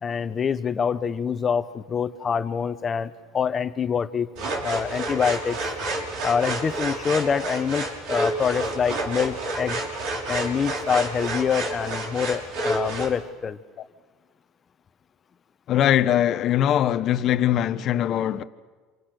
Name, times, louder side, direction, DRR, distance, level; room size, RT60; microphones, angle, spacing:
voice 1, 0.0-4.3 4.6-5.6 6.2-9.8 10.3-13.6, left 6 dB, 35° left, 1.3 m, -25 dB
sound 1, 4.3-13.1, right 2 dB, 70° right, 6.1 m, -29 dB
voice 2, 15.7-18.4, left 11 dB, 50° left, 1.2 m, -21 dB
29.0 x 27.0 x 6.8 m
supercardioid pair, 95°, 0 cm